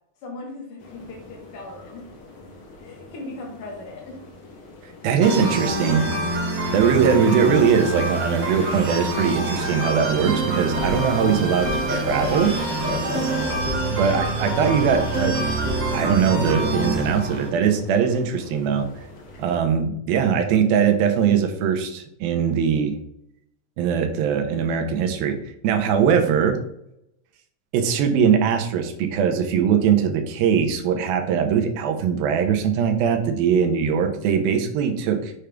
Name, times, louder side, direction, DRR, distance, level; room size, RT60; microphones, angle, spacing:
voice 1, 0.2-2.1 2.8-4.2 14.0-14.2, left 2 dB, 80° left, 0 dB, 1.2 m, -38 dB
sound 1, 0.8-19.6, left 1 dB, 65° left, 1.4 m, -43 dB
voice 2, 5.0-6.1 6.7-12.5 13.8-15.4 15.9-18.9 19.4-23.0 23.8-25.4 25.6-26.6 27.7-35.3, right 7 dB, 90° right, 5 dB, 2.7 m, -21 dB
sound 2, 5.2-17.5, right 1 dB, 55° right, 2.4 m, -26 dB
sound 3, 9.9-16.0, right 1 dB, 15° right, 0.6 m, -30 dB
7.2 x 5.1 x 3.4 m, 0.79 s
omnidirectional pair, 4.1 m